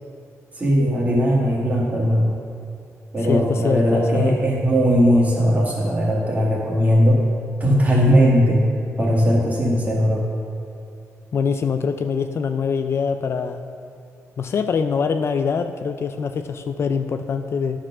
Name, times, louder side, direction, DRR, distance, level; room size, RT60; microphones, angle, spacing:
voice 1, 0.6-2.4 3.1-7.2 7.6-8.6 9.0-10.2, equal, 25° right, -3 dB, 1.8 m, -18 dB
voice 2, 3.2-4.4 11.3-13.6 14.4-17.8, left 6 dB, 50° left, 8 dB, 0.3 m, -24 dB
10.0 x 4.3 x 6.0 m, 2.4 s
wide cardioid pair, 125°, 6 cm